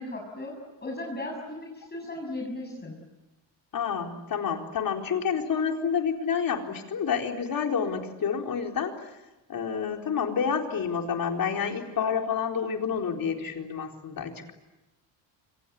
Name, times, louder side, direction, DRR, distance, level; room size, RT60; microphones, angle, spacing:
voice 1, 0.0-2.9, left 1 dB, 20° left, 0 dB, 6.8 m, -36 dB
voice 2, 3.7-9.1 9.5-14.5, left 6 dB, 50° left, 3 dB, 4.2 m, -29 dB
27.5 x 26.0 x 8.4 m, 1.0 s
cardioid pair, 115°, 43 cm